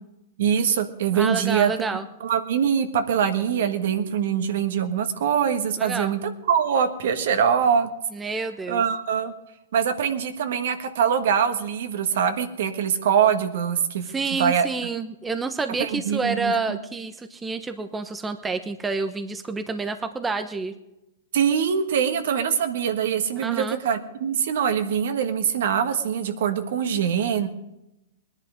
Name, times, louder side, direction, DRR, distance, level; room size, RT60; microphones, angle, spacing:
voice 1, 0.4-7.9 8.7-9.3 9.7-14.7 15.8-16.8 21.3-27.5, right 8 dB, 65° right, 8 dB, 1.5 m, -23 dB
voice 2, 1.1-2.1 5.8-6.1 8.1-8.8 14.1-20.7 23.4-23.8, right 4 dB, 15° right, 9 dB, 0.9 m, -29 dB
20.0 x 10.5 x 5.1 m, 0.92 s
hypercardioid pair, 120°, 0 cm